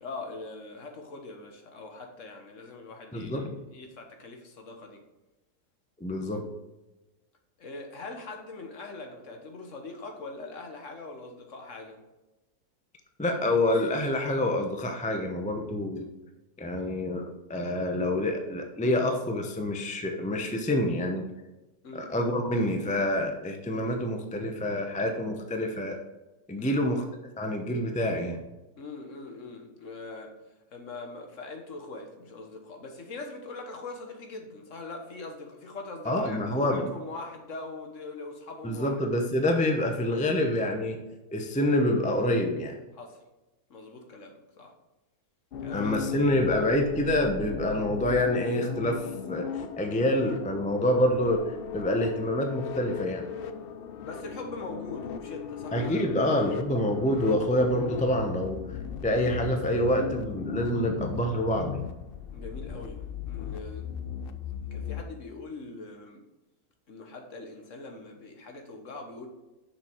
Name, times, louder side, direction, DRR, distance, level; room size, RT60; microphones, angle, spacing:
voice 1, 0.0-5.0 7.6-12.0 21.8-22.1 26.6-27.0 28.8-30.3 30.7-38.9 42.9-43.2 43.7-44.7 45.6-46.5 54.0-56.5 62.3-63.9 64.7-66.2 66.9-69.3, left 3 dB, 55° left, 3 dB, 1.4 m, -42 dB
voice 2, 3.1-3.6 6.0-6.4 13.2-16.1 16.6-21.3 21.9-26.0 26.5-27.0 27.4-28.4 36.1-36.9 38.6-41.0 41.3-42.8 45.7-49.5 49.8-51.4 51.7-53.3 55.7-58.8 59.0-61.9, left 1 dB, 10° left, 4 dB, 0.5 m, -27 dB
sound 1, 45.5-65.0, left 7 dB, 70° left, 0.5 m, -37 dB
6.8 x 5.9 x 4.5 m, 1.1 s
omnidirectional pair, 1.6 m